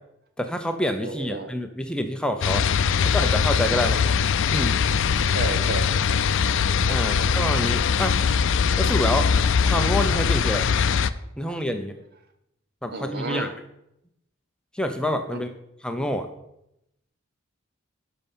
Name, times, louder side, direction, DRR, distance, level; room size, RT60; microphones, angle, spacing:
voice 1, 0.4-2.7 3.0-4.0 4.5-4.8 6.9-8.2 8.8-9.3 9.6-10.7 11.4-11.9 12.8-13.5 14.7-15.5 15.8-16.3, equal, 5° left, 6 dB, 0.6 m, -27 dB
voice 2, 1.0-1.5 5.3-5.9 7.0-7.4 11.4-11.6 12.9-13.5 15.3-15.4, right 3 dB, 50° right, 7 dB, 1.1 m, -33 dB
sound 1, 2.4-11.1, left 6 dB, 65° left, 0.5 m, -21 dB
12.0 x 5.6 x 5.5 m, 0.82 s
head